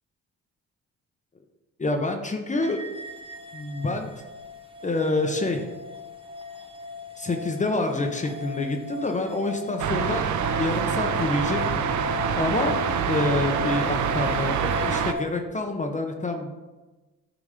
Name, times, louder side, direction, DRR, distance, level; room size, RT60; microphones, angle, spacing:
voice 1, 1.8-2.8 3.5-4.1 4.8-5.6 7.2-10.3 10.6-14.6 14.8-16.6, left 2 dB, 25° left, 4 dB, 0.8 m, -27 dB
sound 1, 2.6-15.2, left 5 dB, 20° right, 0.8 m, -35 dB
sound 2, 9.8-15.1, right 9 dB, 70° right, 0.6 m, -26 dB
8.7 x 3.0 x 5.0 m, 1.2 s
cardioid pair, 75°, 30 cm